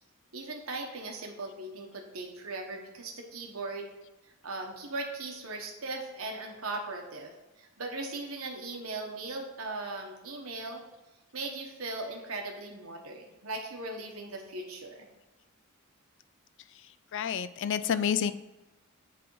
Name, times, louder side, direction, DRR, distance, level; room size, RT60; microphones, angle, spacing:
voice 1, 0.3-3.9 4.4-10.8 11.3-15.1, right 2 dB, 85° right, 2 dB, 1.1 m, -38 dB
voice 2, 17.1-18.3, left 8 dB, 60° left, 13 dB, 0.4 m, -29 dB
8.0 x 3.5 x 4.7 m, 1.1 s
head